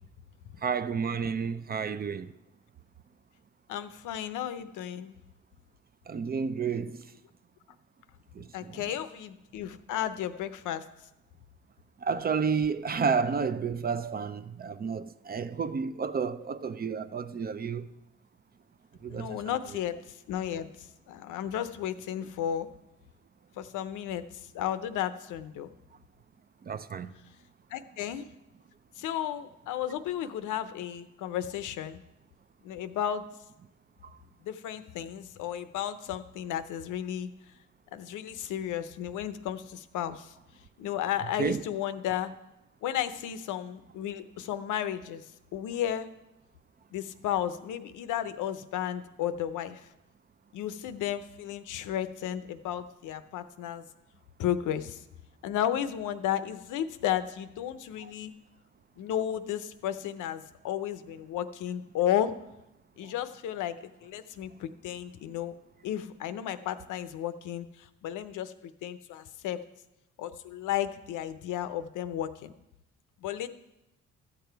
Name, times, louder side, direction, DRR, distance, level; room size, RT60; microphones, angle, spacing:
voice 1, 0.6-2.3 6.1-7.1 8.3-8.8 12.0-17.9 19.0-19.6 26.6-27.1 41.4-41.6 58.0-58.1 63.0-63.1, right 6 dB, 30° right, 0.5 m, -31 dB
voice 2, 3.7-5.1 8.5-10.8 19.1-22.7 23.6-24.2 24.5-25.7 27.7-28.3 29.0-32.0 32.6-33.2 34.4-37.3 37.9-40.3 40.8-42.3 42.8-45.2 45.5-46.1 46.9-49.8 50.5-53.8 54.4-55.0 55.4-58.3 59.0-62.3 63.0-65.5 65.8-68.5 68.8-69.6 70.2-72.5 73.2-73.5, left 10 dB, 85° left, 0.7 m, -33 dB
13.5 x 6.9 x 4.6 m
cardioid pair, 90°, 30 cm